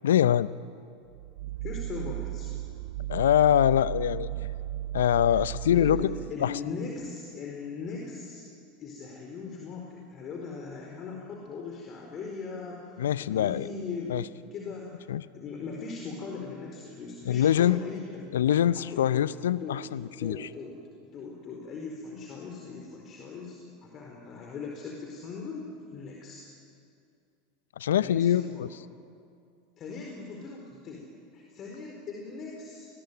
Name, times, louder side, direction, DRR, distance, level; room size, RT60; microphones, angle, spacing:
voice 1, 0.0-0.5 3.1-4.3 4.9-6.0 6.4-6.6 13.0-13.7 14.1-14.2 15.1-15.2 17.3-17.8 18.3-20.5 27.8-28.7, left 10 dB, 75° left, 17 dB, 0.7 m, -24 dB
sound 1, 1.1-6.5, right 15 dB, 65° right, 0.7 m, -35 dB
voice 2, 1.6-2.5 5.3-5.4 5.7-8.4 8.8-14.2 14.5-15.0 15.3-18.4 18.7-19.8 20.1-20.7 21.0-26.5 28.0-28.7 29.8-32.9, left 4 dB, 40° left, 0 dB, 4.5 m, -39 dB
29.0 x 20.5 x 9.3 m, 2.4 s
hypercardioid pair, 85°, 0 cm